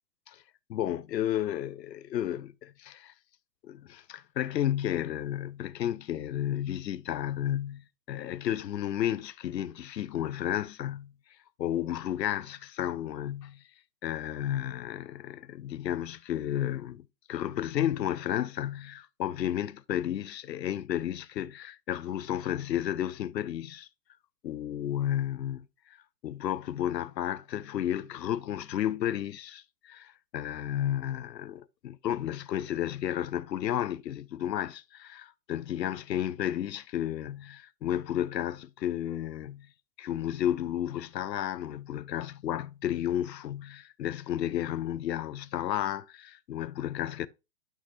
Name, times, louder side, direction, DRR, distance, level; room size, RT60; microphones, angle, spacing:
voice 1, 0.7-3.1 3.6-11.1 11.6-13.6 14.0-23.9 24.4-26.0 26.2-39.7 40.0-47.3, left 11 dB, 85° left, 0.6 m, -32 dB
8.8 x 5.7 x 2.9 m
hypercardioid pair, 130°, 48 cm